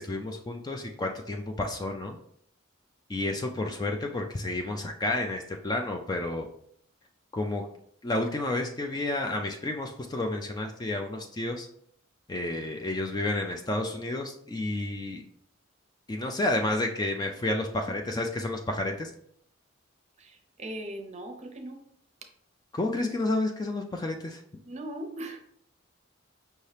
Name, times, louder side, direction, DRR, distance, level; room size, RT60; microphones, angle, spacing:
voice 1, 0.0-2.2 3.1-6.5 7.3-7.7 8.0-11.7 12.3-15.2 16.1-19.1 22.7-24.4, left 2 dB, 20° left, 3 dB, 0.3 m, -30 dB
voice 2, 20.2-21.8 24.7-25.4, right 1 dB, 35° right, 5 dB, 0.6 m, -39 dB
5.5 x 2.7 x 3.2 m, 0.67 s
head